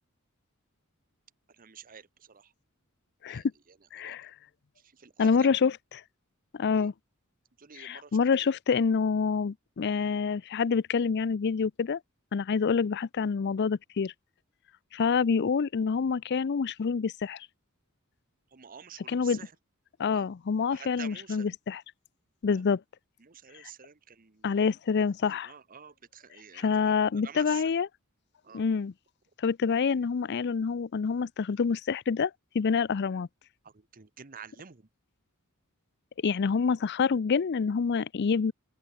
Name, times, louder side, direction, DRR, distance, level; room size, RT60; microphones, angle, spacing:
voice 1, 1.5-2.5 3.3-4.2 4.8-5.5 6.7-6.9 7.6-8.5 18.5-19.5 20.1-20.3 20.7-21.5 22.5-22.6 23.2-24.5 25.2-27.7 28.4-28.7 33.6-34.9, right 7 dB, 40° right, 1.0 m, -49 dB
voice 2, 3.9-4.3 5.2-5.7 6.5-6.9 7.8-12.0 12.3-14.1 14.9-17.5 19.1-19.4 20.0-21.8 22.4-22.8 23.5-23.7 24.4-25.5 26.5-27.9 28.5-28.9 29.4-33.3 36.2-38.5, left 5 dB, 50° left, 0.4 m, -27 dB
open air
head